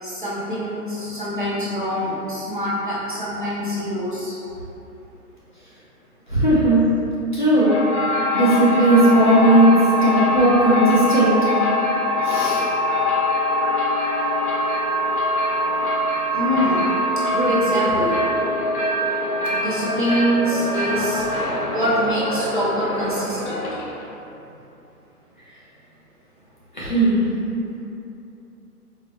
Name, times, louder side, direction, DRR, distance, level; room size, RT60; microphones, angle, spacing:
voice 1, 0.0-4.4 16.3-16.9 17.3-18.2 19.5-21.3 21.7-23.7, equal, 35° right, -9 dB, 0.4 m, -24 dB
voice 2, 6.3-6.9 7.3-7.7 8.3-11.4 12.2-12.6 26.7-27.2, right 1 dB, 35° left, -9 dB, 0.5 m, -16 dB
sound 1, 7.6-24.0, left 1 dB, 70° left, 0.9 m, -23 dB
4.6 x 2.0 x 2.9 m, 2.9 s
hypercardioid pair, 165°, 46 cm